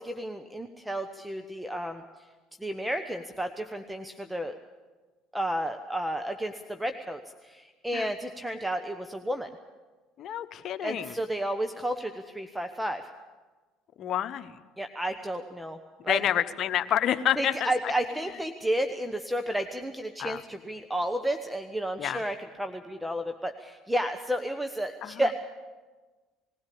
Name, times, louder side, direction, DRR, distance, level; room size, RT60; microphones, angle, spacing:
voice 1, 0.0-2.0 2.6-4.6 5.3-9.5 10.8-13.0 14.8-15.8 16.0-16.2 17.4-25.3, right 1 dB, 5° right, 7 dB, 1.2 m, -32 dB
voice 2, 10.2-11.1 14.0-14.6 16.1-17.9 20.2-20.4 22.0-22.2 25.0-25.3, left 10 dB, 55° left, 10 dB, 1.1 m, -29 dB
20.5 x 16.0 x 8.6 m, 1.3 s
hypercardioid pair, 70°, 0 cm